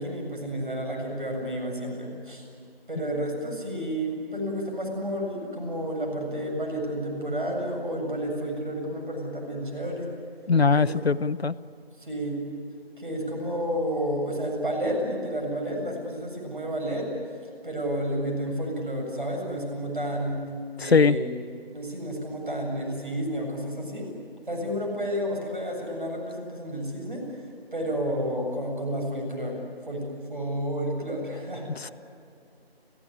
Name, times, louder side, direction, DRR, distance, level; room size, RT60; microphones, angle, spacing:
voice 1, 0.0-2.4 2.9-10.1 10.7-10.9 12.0-12.4 13.0-17.1 17.6-20.5 20.8-21.3 21.7-24.1 24.5-27.3 27.7-30.0 30.3-31.7, equal, 55° right, 1 dB, 7.4 m, -31 dB
voice 2, 10.5-11.5 20.8-21.2 31.8-31.9, left 5 dB, 80° left, 16 dB, 0.8 m, -21 dB
27.0 x 16.0 x 10.0 m, 2.5 s
figure-of-eight pair, 175°, 31 cm